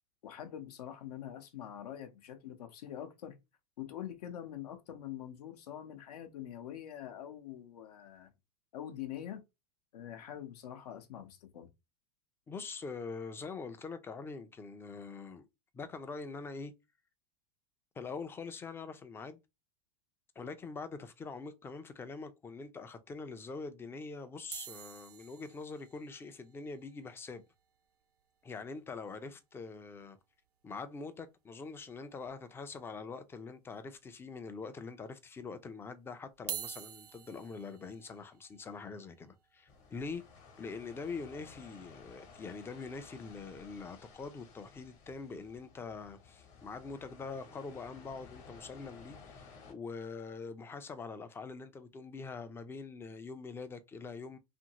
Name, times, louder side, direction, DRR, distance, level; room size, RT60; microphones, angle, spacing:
voice 1, 0.2-3.4 3.8-8.3 8.7-9.4 9.9-11.7, left 10 dB, 80° left, 0.7 m, -44 dB
voice 2, 12.5-15.5 15.7-16.7 18.0-19.4 20.4-27.4 28.4-30.2 30.6-40.2 40.6-54.4, left 4 dB, 10° left, 0.3 m, -44 dB
sound 1, 24.5-28.9 29.2-29.3 29.4-29.6 30.0-30.1 31.5-31.6 32.2-32.8 33.3-33.4 34.2-34.3 36.3-42.4 43.0-43.2, right 11 dB, 85° right, 0.5 m, -49 dB
sound 2, 39.7-49.7, left 5 dB, 40° left, 1.0 m, -55 dB
2.7 x 2.5 x 2.8 m
hypercardioid pair, 115°, 20 cm